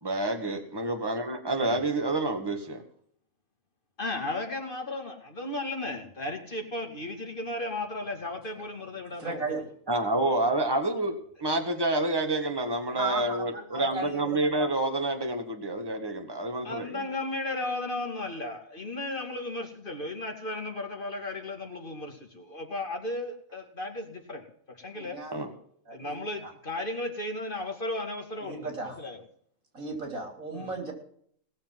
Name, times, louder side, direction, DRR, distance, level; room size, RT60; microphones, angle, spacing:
voice 1, 0.0-2.8 9.9-17.0 25.3-25.5, right 2 dB, 15° right, 5 dB, 1.9 m, -28 dB
voice 2, 4.0-9.6 16.6-25.2 25.9-28.7 29.0-29.2 30.5-30.7, left 2 dB, 40° left, 3 dB, 2.5 m, -35 dB
voice 3, 9.2-9.6 12.9-14.7 24.9-25.4 25.9-26.2 26.4-26.5 28.4-29.0 29.7-30.9, right 2 dB, 75° right, 3 dB, 4.1 m, -35 dB
18.5 x 7.2 x 7.6 m, 0.64 s
omnidirectional pair, 1.4 m